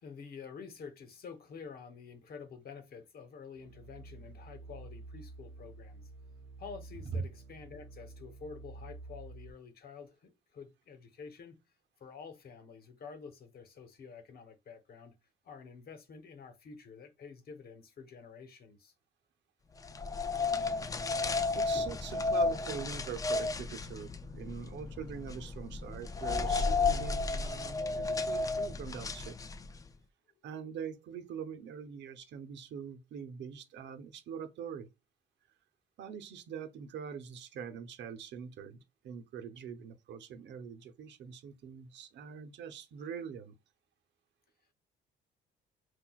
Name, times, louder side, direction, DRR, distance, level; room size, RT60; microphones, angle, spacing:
voice 1, 0.0-6.1 6.6-11.6 12.0-15.1 15.4-18.9 30.4-30.5, left 5 dB, 55° left, 1.1 m, -49 dB
sound 1, 3.6-9.5, right 3 dB, 85° right, 0.4 m, -50 dB
sound 2, 19.8-29.8, left 3 dB, 20° left, 0.3 m, -33 dB
voice 2, 21.5-29.4 30.4-34.9 36.0-38.8 39.0-43.5, right 7 dB, 70° right, 0.9 m, -43 dB
5.9 x 2.5 x 2.4 m
cardioid pair, 120°, 19 cm